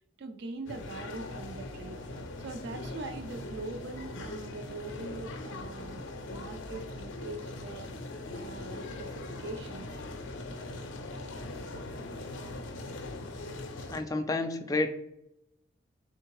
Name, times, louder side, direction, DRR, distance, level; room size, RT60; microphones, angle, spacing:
voice 1, 0.2-2.0 2.4-7.9 8.3-9.9, right 2 dB, 60° right, 7 dB, 0.4 m, -42 dB
sound 1, 0.7-14.0, left 2 dB, 75° left, 0.5 m, -41 dB
voice 2, 13.9-14.9, left 2 dB, 20° left, 6 dB, 0.3 m, -29 dB
3.6 x 3.5 x 3.0 m, 0.81 s
head